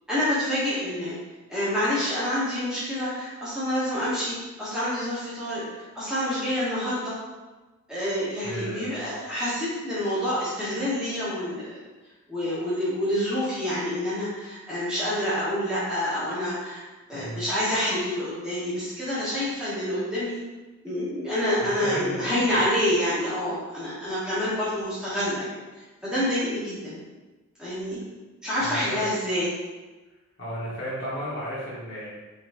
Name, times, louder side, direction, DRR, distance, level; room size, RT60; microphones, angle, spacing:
voice 1, 0.1-1.1 1.5-5.6 5.9-7.1 7.9-11.6 12.3-16.8 17.1-20.4 20.8-25.5 26.0-27.0 27.6-28.0 28.4-29.5, left 1 dB, 5° right, -11 dB, 1.0 m, -27 dB
voice 2, 8.4-9.0 17.1-17.4 21.6-22.2 22.5-22.6 28.6-29.0 30.4-32.1, equal, 50° left, -8 dB, 1.2 m, -34 dB
3.8 x 3.0 x 2.5 m, 1.2 s
head